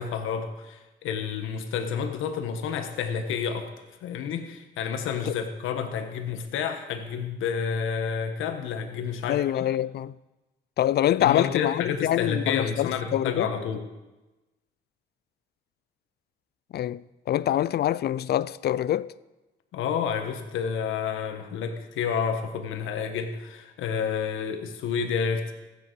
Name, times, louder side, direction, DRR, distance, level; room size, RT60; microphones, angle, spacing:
voice 1, 0.0-3.7 4.0-9.7 11.2-13.8 19.7-25.5, left 6 dB, 85° left, 1.4 m, -30 dB
voice 2, 9.3-10.1 10.8-13.5 16.7-19.1, left 12 dB, 55° left, 0.4 m, -25 dB
15.0 x 9.9 x 4.7 m
cardioid pair, 90°, 20 cm